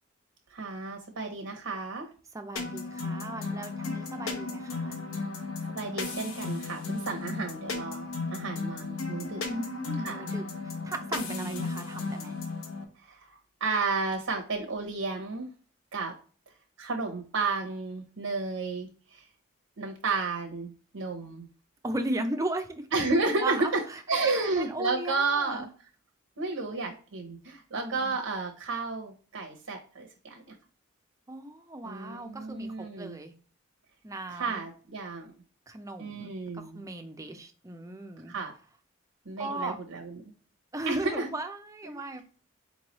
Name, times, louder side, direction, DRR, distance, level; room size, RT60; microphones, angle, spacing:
voice 1, 0.5-2.1 5.7-9.4 10.0-10.3 11.3-11.7 13.0-15.5 15.9-16.1 16.8-19.2 19.8-21.5 22.9-23.6 24.1-25.7 26.4-30.5 31.8-33.2 34.3-35.3 36.0-36.8 38.3-38.5 39.3-40.1 40.9-41.3 41.8-42.2, right 3 dB, 75° right, 2 dB, 0.8 m, -32 dB
voice 2, 2.3-5.0 9.5-12.4 21.8-22.9 23.4-25.7 27.8-28.2 31.3-33.3 34.0-34.6 35.7-38.3 39.4-39.8 40.7-42.2, right 2 dB, 15° right, 6 dB, 0.4 m, -36 dB
sound 1, 2.6-12.8, left 3 dB, 80° left, 0.8 m, -35 dB
4.5 x 3.1 x 2.9 m, 0.40 s
head